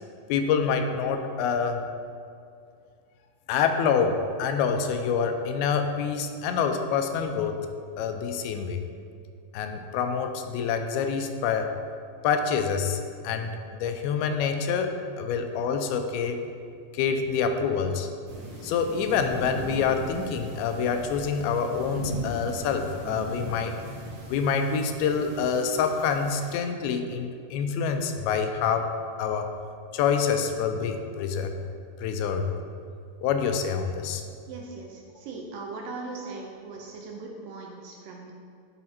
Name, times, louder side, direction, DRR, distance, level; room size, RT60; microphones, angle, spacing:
voice 1, 0.3-1.8 3.5-7.7 8.0-8.8 9.5-11.7 12.2-16.4 16.9-18.1 18.6-23.7 24.3-29.5 29.9-31.6 32.0-32.5 33.2-34.2, left 6 dB, 85° left, 6 dB, 2.4 m, -26 dB
sound 1, 18.3-26.5, right 2 dB, 50° right, 1.8 m, -39 dB
voice 2, 34.5-38.3, right 3 dB, 75° right, 0 dB, 2.1 m, -39 dB
9.8 x 4.8 x 4.2 m, 2.3 s
omnidirectional pair, 4.4 m